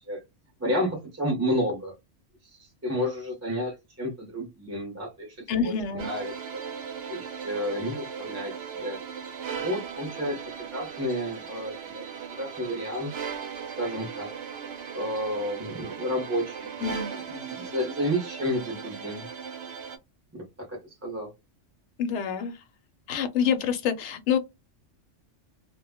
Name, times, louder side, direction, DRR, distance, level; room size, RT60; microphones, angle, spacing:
voice 1, 0.6-1.9 2.4-6.6 7.1-9.0 9.5-10.4 10.7-12.0 12.3-13.1 13.8-14.3 14.9-16.7 17.3-19.2 20.3-21.3, equal, 15° right, 0.6 m, -31 dB
voice 2, 5.5-6.1 16.8-17.1 22.0-22.5 23.1-24.4, left 7 dB, 70° left, 0.9 m, -26 dB
sound 1, 6.0-20.0, right 7 dB, 65° right, 0.7 m, -38 dB
2.2 x 2.0 x 3.4 m
omnidirectional pair, 1.3 m